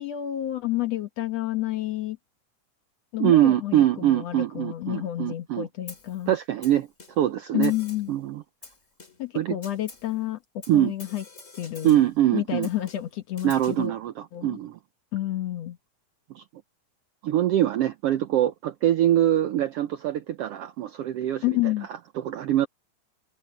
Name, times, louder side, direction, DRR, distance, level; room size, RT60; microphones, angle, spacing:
voice 1, 0.0-2.2 3.1-6.4 7.5-8.1 9.2-10.4 10.7-11.2 11.6-12.0 12.3-13.9 14.3-14.6 15.1-15.8 21.4-21.9, left 14 dB, 65° left, 2.1 m, -29 dB
voice 2, 3.2-5.7 6.3-6.9 7.2-7.7 8.1-8.4 9.3-9.6 10.7-10.9 11.8-12.7 13.4-14.8 16.3-16.4 17.2-21.7 22.1-22.7, right 12 dB, 80° right, 1.4 m, -23 dB
Snare drum, 5.9-6.2 6.6-7.3 7.6-8.2 8.6-9.3 9.6-10.2 10.6-12.2 12.6-13.9, left 3 dB, 25° left, 3.0 m, -47 dB
open air
omnidirectional pair, 3.5 m